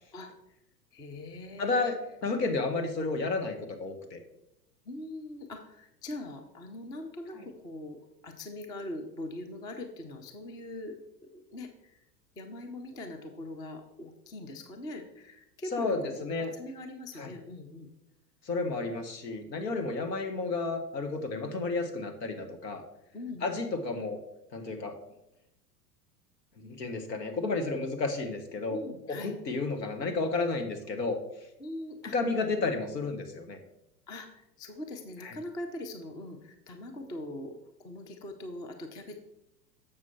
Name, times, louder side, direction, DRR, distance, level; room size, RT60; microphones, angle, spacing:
voice 1, 0.9-1.9 4.9-11.0 11.2-12.0 12.4-17.9 23.1-23.6 28.7-29.3 31.6-32.1 34.1-39.2, left 1 dB, 10° left, 5 dB, 0.3 m, -42 dB
voice 2, 1.6-4.2 15.7-16.5 17.2-17.3 18.4-22.8 23.4-24.2 24.5-25.0 26.6-28.8 29.1-31.2 32.1-33.6 35.2-35.3, left 3 dB, 80° left, 6 dB, 1.5 m, -32 dB
7.2 x 6.1 x 4.3 m, 0.85 s
hypercardioid pair, 95°, 49 cm